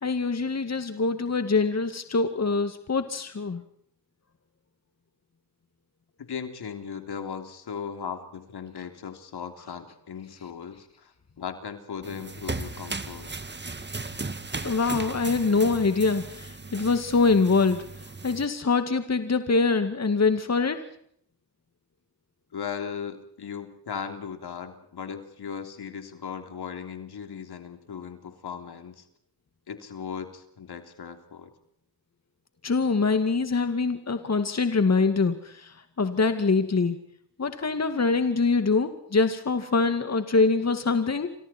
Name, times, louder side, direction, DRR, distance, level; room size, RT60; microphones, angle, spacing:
voice 1, 0.0-3.6 14.6-17.9 18.2-20.8 32.6-35.7 36.0-37.0 37.4-41.3, left 4 dB, 40° left, 8 dB, 2.2 m, -24 dB
voice 2, 6.2-11.1 11.4-13.3 22.5-29.0 29.7-31.5, left 7 dB, 70° left, 6 dB, 3.4 m, -37 dB
sound 1, 12.0-18.5, right 3 dB, 25° right, 2.1 m, -36 dB
29.5 x 25.5 x 4.5 m, 0.67 s
cardioid pair, 60°, 40 cm